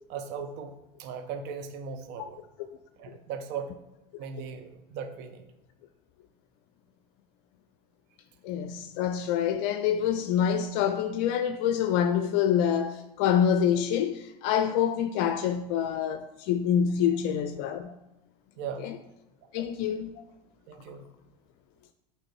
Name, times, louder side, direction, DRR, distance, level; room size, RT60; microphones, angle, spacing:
voice 1, 0.1-2.4 3.0-3.7 4.2-5.5 18.6-18.9 20.7-21.0, right 6 dB, 55° right, 1.0 m, -38 dB
voice 2, 8.4-18.0 18.8-19.0 19.5-20.2, left 8 dB, 60° left, 0.5 m, -26 dB
8.8 x 3.3 x 4.6 m
hypercardioid pair, 80°, 21 cm